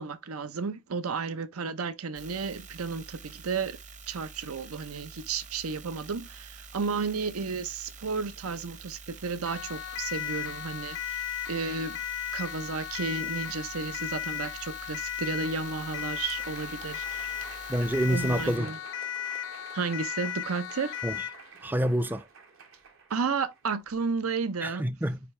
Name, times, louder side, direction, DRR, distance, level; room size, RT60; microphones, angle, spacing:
voice 1, 0.0-3.8 4.1-12.0 12.3-17.4 18.1-18.8 19.7-21.0 23.1-24.8, right 5 dB, 90° right, 0.7 m, -33 dB
sound 1, 2.1-18.6, right 4 dB, 35° right, 0.9 m, -47 dB
Siren, 9.5-21.4, left 10 dB, 60° left, 0.4 m, -36 dB
Crowd, 15.8-24.1, right 5 dB, 75° right, 1.9 m, -49 dB
voice 2, 17.7-18.7 21.0-21.2 21.6-22.2 24.6-25.2, right 1 dB, 10° right, 0.4 m, -27 dB
9.4 x 3.4 x 3.2 m
head